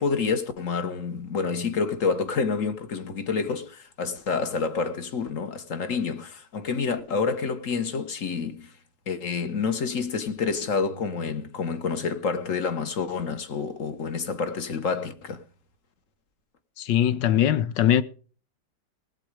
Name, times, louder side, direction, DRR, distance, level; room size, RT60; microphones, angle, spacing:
voice 1, 0.0-8.7 9.1-15.4, left 5 dB, 50° left, 1.6 m, -28 dB
voice 2, 16.8-18.0, left 11 dB, 90° left, 1.6 m, -21 dB
18.5 x 8.3 x 5.0 m
omnidirectional pair, 1.9 m